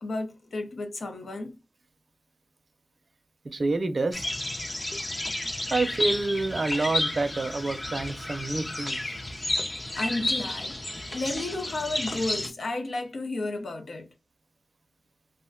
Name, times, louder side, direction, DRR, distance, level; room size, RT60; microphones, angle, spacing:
voice 1, 0.0-1.5 10.0-10.8 11.1-14.1, left 2 dB, 85° left, 0.6 m, -32 dB
voice 2, 3.5-4.2 5.7-9.0, right 3 dB, 60° right, 0.5 m, -28 dB
sound 1, 4.1-12.5, left 1 dB, 35° left, 0.5 m, -31 dB
2.4 x 2.1 x 3.6 m
wide cardioid pair, 80°, 0 cm